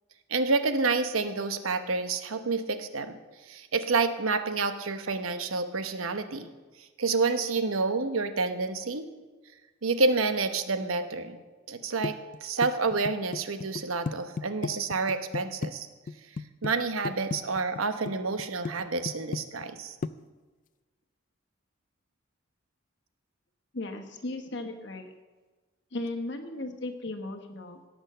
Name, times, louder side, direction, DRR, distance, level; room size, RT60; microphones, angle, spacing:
voice 1, 0.3-3.2 3.5-6.5 7.0-9.1 9.8-11.4 11.7-12.1 12.4-15.9 16.6-19.9, right 3 dB, 80° right, 9 dB, 0.9 m, -28 dB
sound 1, 12.0-15.7 16.1-16.7 17.0-18.1 18.4-18.7 19.0-19.8 20.0-20.1, left 4 dB, 40° left, 0.3 m, -33 dB
voice 2, 23.7-25.1 25.9-27.8, left 2 dB, 55° left, 4 dB, 1.2 m, -36 dB
17.0 x 6.3 x 6.5 m, 1.3 s
head